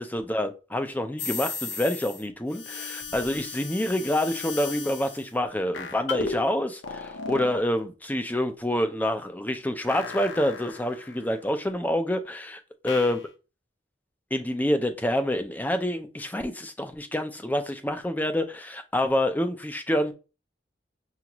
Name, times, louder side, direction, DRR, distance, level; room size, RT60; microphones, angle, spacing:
voice 1, 0.0-12.6 12.8-13.2 14.3-20.1, left 1 dB, 10° left, 0.4 m, -27 dB
sound 1, 1.2-2.2 2.5-5.3 5.7-6.4 6.8-7.6 9.9-11.4 12.9-13.2, left 4 dB, 90° left, 0.8 m, -36 dB
6.8 x 2.5 x 3.0 m
head